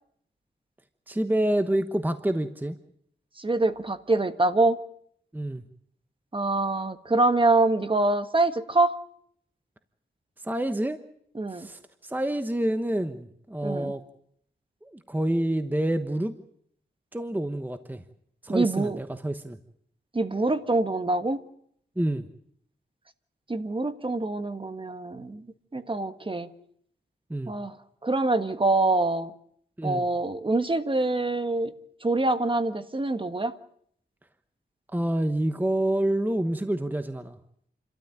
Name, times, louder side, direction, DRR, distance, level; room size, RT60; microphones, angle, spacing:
voice 1, 1.1-2.8 5.3-5.6 10.4-11.0 11.5-14.0 14.8-16.3 17.1-18.0 18.4-19.6 22.0-22.3 27.3-27.5 29.8-30.1 34.9-37.4, right 1 dB, 10° right, 9 dB, 1.1 m, -27 dB
voice 2, 3.4-4.8 6.3-8.9 11.3-11.7 13.6-13.9 18.5-19.0 20.1-21.4 23.5-25.4 25.7-26.5 27.5-27.7 28.0-29.3 29.8-31.7 32.0-33.5, right 2 dB, 30° right, 10 dB, 1.4 m, -25 dB
28.5 x 13.5 x 9.0 m, 0.69 s
wide cardioid pair, 95°, 19 cm